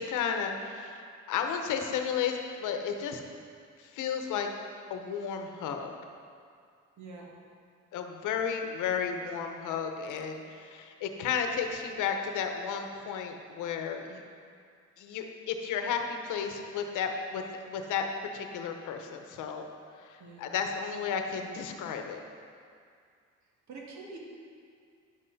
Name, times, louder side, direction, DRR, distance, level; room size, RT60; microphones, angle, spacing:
voice 1, 0.0-3.2 3.8-4.5 4.9-5.9 7.9-14.2 15.0-18.1 18.3-19.6 20.0-22.2, left 7 dB, 85° left, 5 dB, 0.9 m, -33 dB
voice 2, 7.0-7.3 8.8-9.3 20.2-20.5 23.7-24.2, right 3 dB, 65° right, -2 dB, 2.0 m, -46 dB
10.5 x 7.6 x 4.1 m, 2.2 s
cardioid pair, 90°, 30 cm